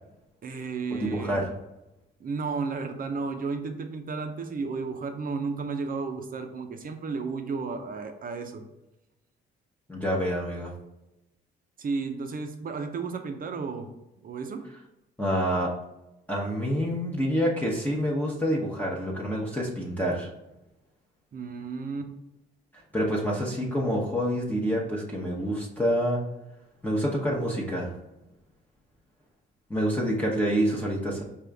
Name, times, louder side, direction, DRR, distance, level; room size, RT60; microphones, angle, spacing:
voice 1, 0.4-1.4 2.2-8.6 11.8-13.9 14.2-14.7 21.3-22.1, right 4 dB, 45° right, 6 dB, 0.7 m, -33 dB
voice 2, 1.0-1.5 9.9-10.7 15.2-15.7 16.3-20.3 22.9-26.2 26.8-27.9 29.7-31.2, equal, 10° left, -4 dB, 0.9 m, -27 dB
5.3 x 2.5 x 3.4 m, 0.95 s
cardioid pair, 90°, 20 cm